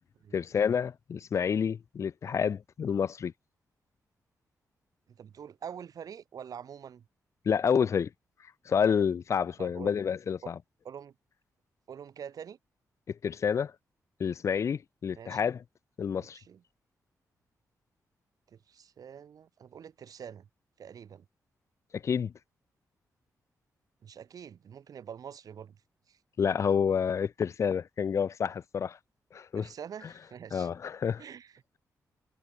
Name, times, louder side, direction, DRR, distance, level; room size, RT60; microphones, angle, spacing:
voice 1, 0.3-3.3 7.5-8.1 8.7-10.6 13.1-13.7 14.2-15.6 16.0-16.4 21.9-22.3 26.4-29.0 29.3-29.7 30.5-31.2, left 7 dB, 50° left, 0.4 m, -29 dB
voice 2, 5.1-7.1 9.6-9.9 10.4-10.5 10.8-11.1 11.9-12.6 15.1-15.5 16.2-16.6 18.5-20.5 20.8-21.3 24.0-25.8 26.1-26.2 29.5-30.7 31.2-31.6, right 8 dB, 70° right, 2.9 m, -45 dB
cardioid pair, 90°, 6 cm